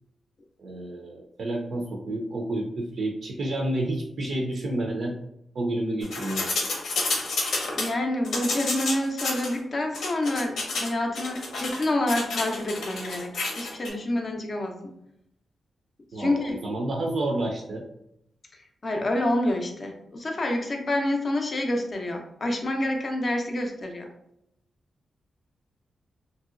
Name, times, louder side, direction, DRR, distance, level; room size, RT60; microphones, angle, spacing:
voice 1, 0.6-5.2 5.5-6.7 16.1-17.9, right 1 dB, 55° right, 0 dB, 0.4 m, -30 dB
sound 1, 6.0-7.9 8.2-9.5 9.9-10.9 11.1-13.9, left 3 dB, 85° left, 0.8 m, -30 dB
voice 2, 7.7-14.9 16.2-16.6 18.8-24.1, left 1 dB, 35° left, 3 dB, 0.5 m, -28 dB
2.9 x 2.7 x 2.4 m, 0.76 s
wide cardioid pair, 165°, 0 cm